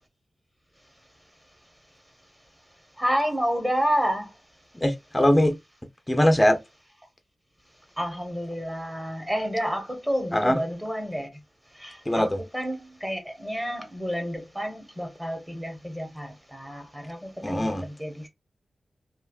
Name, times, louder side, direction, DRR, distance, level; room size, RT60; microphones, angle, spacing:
voice 1, 3.0-4.3 8.0-11.3 11.8-18.3, equal, 10° right, 1.1 m, -30 dB
voice 2, 4.8-5.6 6.1-6.6 10.3-10.6 12.1-12.4 17.4-17.9, left 1 dB, 15° left, 0.5 m, -21 dB
3.2 x 2.8 x 2.3 m
wide cardioid pair, 95°, 0 cm